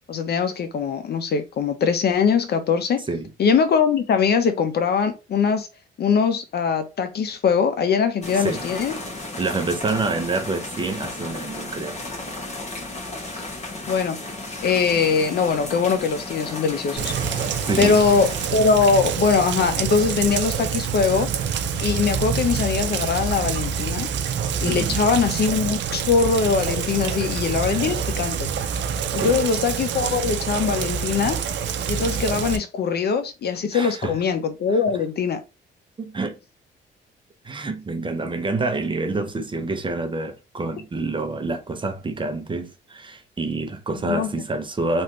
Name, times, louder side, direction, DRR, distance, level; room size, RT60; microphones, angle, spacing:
voice 1, 0.1-3.0 3.4-5.7 6.0-9.0 13.9-14.2 14.6-17.1 17.8-21.3 21.8-24.1 24.6-28.5 29.1-31.4 31.9-35.4 44.0-44.3, left 5 dB, 55° left, 0.7 m, -22 dB
sound 1, 8.2-18.5, left 2 dB, 35° left, 1.3 m, -34 dB
voice 2, 8.3-8.6 9.0-12.0 17.6-18.0 24.6-25.0 27.5-27.9 29.1-29.4 33.7-34.2 34.7-35.0 36.0-36.4 37.4-45.0, right 3 dB, 25° right, 0.7 m, -28 dB
Rain, 17.0-32.6, right 7 dB, 65° right, 0.5 m, -26 dB
3.2 x 2.6 x 3.0 m
cardioid pair, 90°, 20 cm